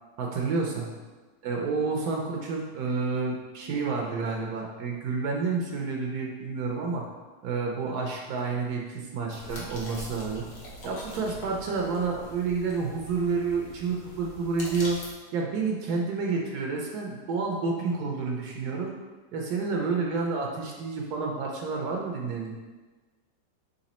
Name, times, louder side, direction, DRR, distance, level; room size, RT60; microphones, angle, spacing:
voice 1, 0.2-0.9 1.4-7.0 7.4-10.5 10.8-15.0 15.3-18.9 19.3-22.5, right 4 dB, 70° right, 0 dB, 1.1 m, -29 dB
sound 1, 9.3-15.1, equal, 85° left, 1.6 m, -43 dB
4.0 x 3.2 x 4.1 m, 1.3 s
omnidirectional pair, 1.8 m